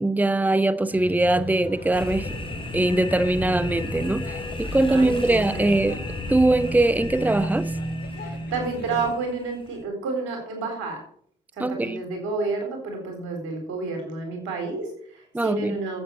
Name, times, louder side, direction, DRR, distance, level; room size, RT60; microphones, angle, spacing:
voice 1, 0.0-2.4 2.7-6.0 6.3-7.7 11.6-12.0 15.3-15.8, right 2 dB, 10° right, 0.9 m, -22 dB
sound 1, 0.9-9.1, equal, 60° left, 2.8 m, -35 dB
sound 2, 1.9-9.8, left 1 dB, 25° left, 3.6 m, -35 dB
voice 2, 4.9-5.7 8.1-11.0 11.6-16.0, right 3 dB, 90° right, 4.1 m, -30 dB
9.8 x 8.1 x 8.5 m
supercardioid pair, 50°, 19 cm